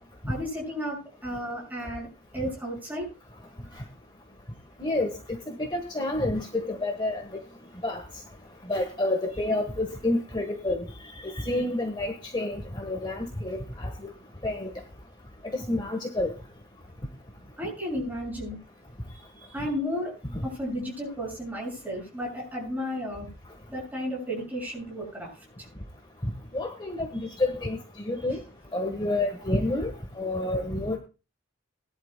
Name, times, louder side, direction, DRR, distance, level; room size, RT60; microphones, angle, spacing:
voice 1, 0.3-3.1 17.6-18.6 19.1-20.1 20.4-23.3 23.7-25.3, equal, 10° right, -3 dB, 6.6 m, -33 dB
voice 2, 4.8-5.2 5.5-7.2 7.8-8.0 8.7-10.9 11.2-14.1 14.4-14.7 15.5-16.3 26.5-27.8 28.1-28.4 28.7-29.9 30.2-31.0, left 2 dB, 20° left, 4 dB, 1.3 m, -29 dB
21.0 x 11.5 x 2.2 m, 0.32 s
head